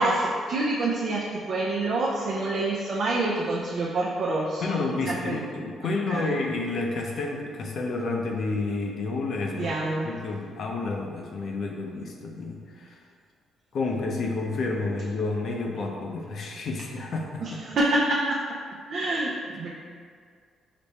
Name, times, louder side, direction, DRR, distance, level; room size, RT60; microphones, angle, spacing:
voice 1, 0.0-4.8 5.0-5.4 5.8-6.3 9.5-10.1 17.4-18.4 18.9-19.7, right 2 dB, 60° right, -4 dB, 0.5 m, -27 dB
voice 2, 4.6-9.8 10.0-13.0 13.7-17.4, left 3 dB, 60° left, 1 dB, 0.6 m, -30 dB
5.0 x 2.2 x 4.1 m, 2.1 s
cardioid pair, 90°, 0 cm